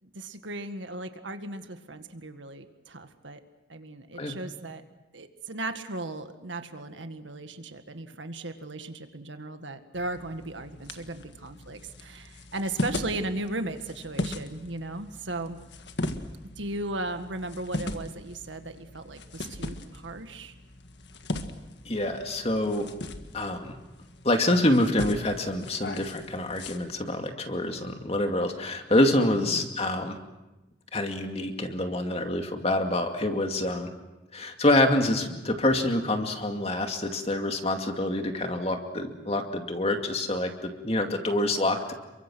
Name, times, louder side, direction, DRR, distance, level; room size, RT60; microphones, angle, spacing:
voice 1, 0.1-3.4 3.7-4.8 5.1-15.6 16.6-20.5 29.3-29.7, right 2 dB, 90° right, 8 dB, 1.9 m, -36 dB
sound 1, 9.9-26.8, left 1 dB, 70° left, 1.7 m, -38 dB
voice 2, 21.9-22.9 23.3-23.8 24.2-30.2 30.9-33.9 34.3-41.9, left 1 dB, 35° left, 4 dB, 2.3 m, -26 dB
29.0 x 23.5 x 6.3 m, 1.0 s
head